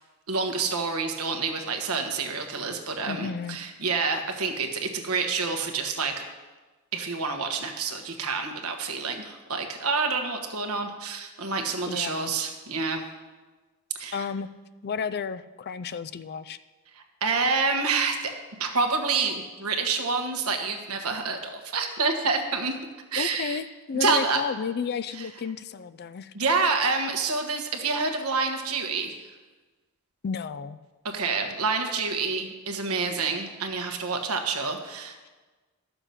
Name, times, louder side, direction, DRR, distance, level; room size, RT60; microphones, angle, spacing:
voice 1, 0.3-6.2 6.9-13.0 13.9-14.3 16.9-18.3 18.6-22.7 23.1-23.6 24.0-24.4 25.1-25.3 26.3-29.2 31.0-35.3, right 4 dB, 70° right, 5 dB, 1.3 m, -28 dB
voice 2, 3.1-3.6 11.9-12.3 14.1-14.5 14.8-16.6 23.2-26.3 30.2-30.8, left 5 dB, 45° left, 13 dB, 0.4 m, -32 dB
12.0 x 6.9 x 5.8 m, 1.3 s
head